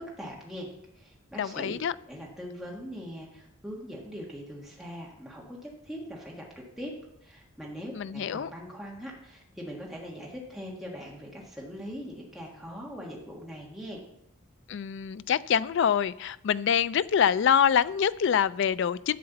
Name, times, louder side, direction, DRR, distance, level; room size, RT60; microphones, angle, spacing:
voice 1, 0.0-1.7 2.1-6.9 7.2-14.0, equal, ahead, -3 dB, 1.5 m, -41 dB
voice 2, 1.4-1.9 8.0-8.5 14.7-19.2, left 8 dB, 60° left, 17 dB, 0.3 m, -25 dB
11.0 x 7.6 x 4.0 m, 0.79 s
head